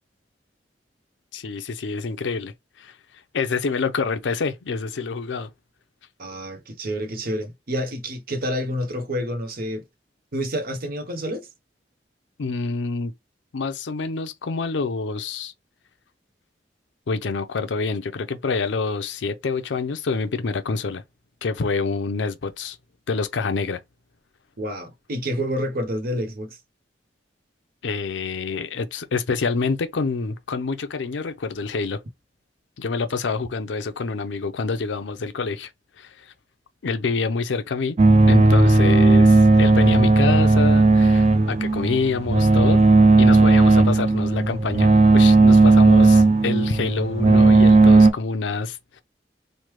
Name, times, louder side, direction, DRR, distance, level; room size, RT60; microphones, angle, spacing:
voice 1, 1.3-2.5 2.8-2.9 3.3-5.5 12.4-13.1 13.5-15.5 17.1-21.0 21.4-22.8 23.1-23.8 27.8-32.0 32.8-35.7 36.0-36.3 36.8-38.0 38.3-42.8 43.2-49.0, left 4 dB, 80° left, 0.5 m, -27 dB
voice 2, 6.2-9.8 10.3-11.5 24.6-26.6, equal, 55° right, 0.7 m, -28 dB
sound 1, 38.0-48.1, right 3 dB, 40° right, 0.4 m, -15 dB
3.2 x 2.1 x 3.1 m
head